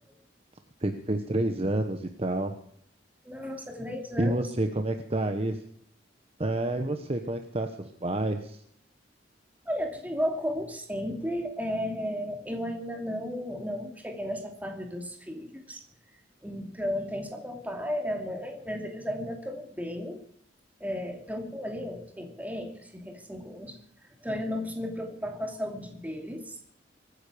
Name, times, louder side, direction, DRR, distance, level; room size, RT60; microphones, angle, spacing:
voice 1, 0.8-2.5 4.2-5.6 6.4-8.6, right 1 dB, 35° right, 6 dB, 1.1 m, -29 dB
voice 2, 3.2-4.3 9.6-15.8 16.4-20.2 20.8-26.7, equal, 10° right, 3 dB, 2.7 m, -34 dB
24.0 x 10.0 x 5.1 m, 0.64 s
head